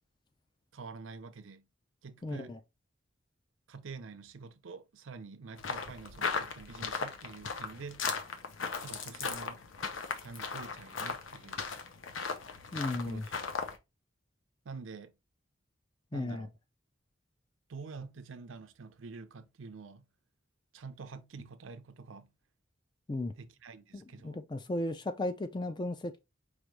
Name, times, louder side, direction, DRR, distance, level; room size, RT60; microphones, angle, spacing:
voice 1, 0.7-1.7 2.0-2.6 3.7-8.1 8.8-9.6 10.2-11.7 12.9-13.3 14.6-15.1 16.1-16.5 17.7-20.1 20.7-22.3 23.4-24.4, right 4 dB, 80° right, 0.5 m, -47 dB
voice 2, 2.2-2.6 12.7-13.2 16.1-16.5 23.1-23.3 23.9-26.2, left 2 dB, 25° left, 0.4 m, -35 dB
sound 1, 5.6-13.8, left 5 dB, 75° left, 0.7 m, -37 dB
4.9 x 2.6 x 3.1 m
head